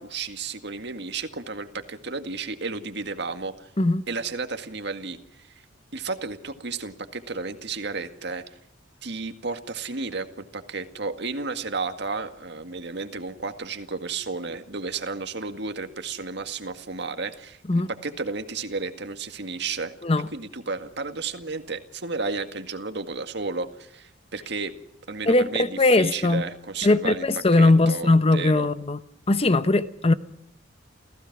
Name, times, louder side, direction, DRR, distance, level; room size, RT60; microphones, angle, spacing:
voice 1, 0.0-3.7 4.1-5.5 5.9-8.4 9.0-17.6 18.0-19.9 20.3-24.7 25.1-27.3 27.5-28.7, right 4 dB, 60° right, 2.0 m, -32 dB
voice 2, 25.3-26.4 26.8-29.0 29.3-30.1, left 2 dB, 30° left, 0.8 m, -20 dB
28.5 x 16.5 x 6.1 m
head